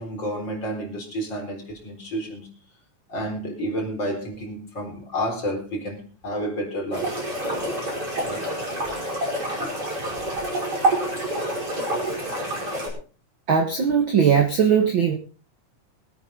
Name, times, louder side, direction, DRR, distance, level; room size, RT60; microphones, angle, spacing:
voice 1, 0.0-2.5 3.1-7.1 7.7-7.8 8.3-8.5 9.6-9.7, equal, 35° left, 0 dB, 4.7 m, -30 dB
sound 1, 6.9-12.9, right 1 dB, 30° right, 5.8 m, -27 dB
voice 2, 13.5-15.1, right 7 dB, 50° right, 2 dB, 1.7 m, -19 dB
23.0 x 9.1 x 3.9 m, 0.37 s
omnidirectional pair, 3.8 m